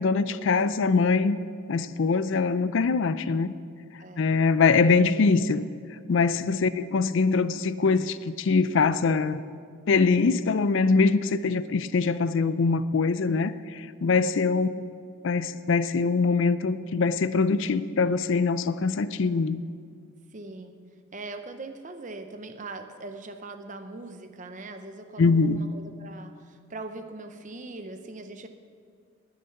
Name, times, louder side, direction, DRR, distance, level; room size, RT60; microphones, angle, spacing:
voice 1, 0.0-1.4 1.7-3.5 4.2-5.6 6.1-9.4 9.9-14.8 15.2-19.6 25.2-25.7, left 4 dB, 60° left, 14 dB, 0.4 m, -23 dB
voice 2, 4.0-4.4 6.5-6.7 20.3-20.8 21.1-28.5, right 2 dB, 35° right, 7 dB, 0.7 m, -41 dB
19.5 x 6.6 x 5.8 m, 2.1 s
head